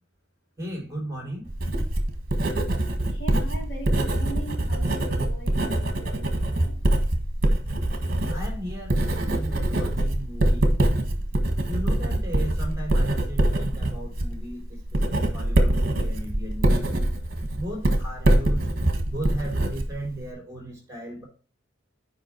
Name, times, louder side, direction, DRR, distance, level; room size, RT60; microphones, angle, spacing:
voice 1, 0.6-1.5 8.3-10.7 11.7-16.9 17.5-18.7 19.1-21.2, right 1 dB, 15° right, 0 dB, 3.8 m, -36 dB
Writing, 1.5-20.3, right 1 dB, 50° right, 1.5 m, -24 dB
voice 2, 3.1-6.8, right 2 dB, 70° left, -1 dB, 3.4 m, -40 dB
8.0 x 5.3 x 4.5 m, 0.38 s
head